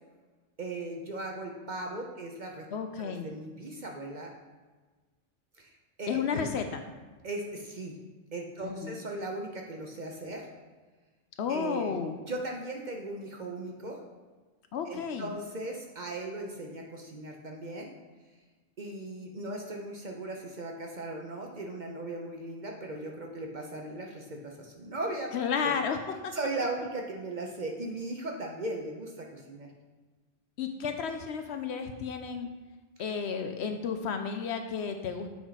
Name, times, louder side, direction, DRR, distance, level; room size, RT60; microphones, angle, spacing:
voice 1, 0.6-2.7 3.0-4.3 5.6-5.7 6.0-6.5 7.2-8.0 8.3-10.5 11.5-12.0 12.3-14.0 14.9-17.9 18.8-25.3 25.6-25.7 26.3-29.7, right 2 dB, 45° right, 1 dB, 0.8 m, -37 dB
voice 2, 2.7-3.3 6.1-6.8 8.6-9.0 11.4-12.2 14.7-15.3 25.3-26.3 30.6-32.5 33.0-35.3, left 6 dB, 65° left, 6 dB, 0.8 m, -32 dB
7.2 x 4.5 x 4.0 m, 1.3 s
omnidirectional pair, 1.3 m